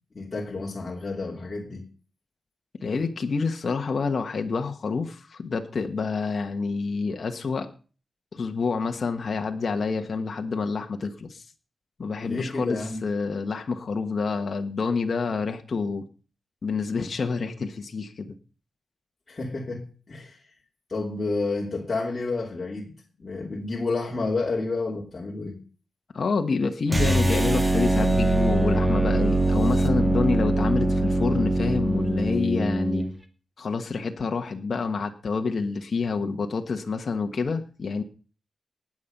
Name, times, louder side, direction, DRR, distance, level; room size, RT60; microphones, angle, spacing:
voice 1, 0.1-1.8 12.2-13.0 19.3-20.4 20.9-22.9 23.2-25.6, left 3 dB, 35° left, 3.0 m, -30 dB
voice 2, 2.8-7.7 8.3-11.4 12.0-16.0 16.6-18.3 26.1-33.0 33.6-38.0, left 4 dB, 55° left, 1.4 m, -28 dB
sound 1, 26.9-33.1, right 1 dB, 15° right, 2.0 m, -22 dB
19.0 x 7.6 x 5.5 m
wide cardioid pair, 105°, 0 cm